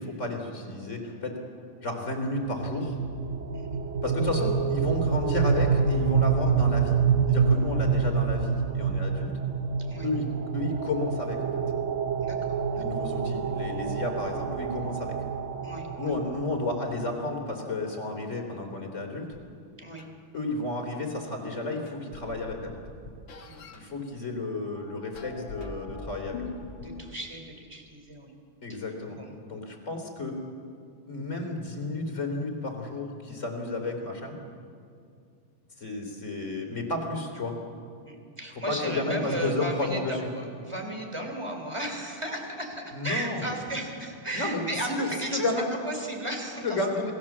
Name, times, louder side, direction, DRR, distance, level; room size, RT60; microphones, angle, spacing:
voice 1, 0.0-1.4 1.8-3.0 4.0-7.0 7.3-9.3 10.0-10.3 10.5-11.5 12.7-15.1 16.0-19.3 20.3-22.7 23.7-26.4 28.6-29.2 29.5-30.4 31.1-34.4 35.8-37.5 38.7-40.2 42.9-43.5 44.3-45.7 46.6-47.1, left 2 dB, 35° left, 2 dB, 3.8 m, -32 dB
sound 1, 2.5-17.3, right 6 dB, 50° right, 1.0 m, -27 dB
voice 2, 12.2-12.8 15.6-16.1 19.8-20.1 23.4-23.6 26.8-28.4 28.7-28.8 29.1-29.3 38.1-45.5 45.8-47.0, right 1 dB, 15° right, 3 dB, 3.6 m, -35 dB
sound 2, 20.0-20.1 21.4-21.5 21.9-23.8 24.7-27.3, left 3 dB, 65° left, 2.5 m, -42 dB
28.0 x 19.5 x 7.4 m, 2.3 s
omnidirectional pair, 2.3 m